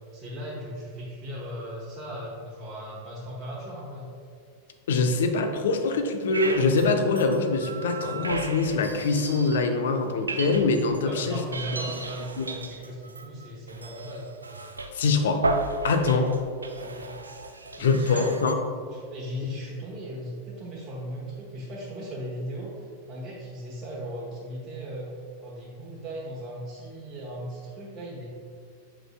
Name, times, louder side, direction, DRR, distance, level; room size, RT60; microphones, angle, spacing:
voice 1, 0.0-4.1 11.0-14.3 16.2-16.4 16.7-17.1 17.7-18.4 18.9-25.1 25.4-28.3, equal, 25° right, -6 dB, 1.0 m, -37 dB
voice 2, 4.9-11.4 12.4-12.5 14.9-15.4 15.8-16.3 17.8-18.5 19.4-19.5, left 3 dB, 60° left, 5 dB, 0.6 m, -24 dB
sound 1, 6.3-6.9 7.2-9.7 10.0-11.0 11.4-18.5, right 3 dB, 80° right, 0.4 m, -34 dB
7.8 x 6.0 x 2.3 m, 2.2 s
figure-of-eight pair, 90°, 0 cm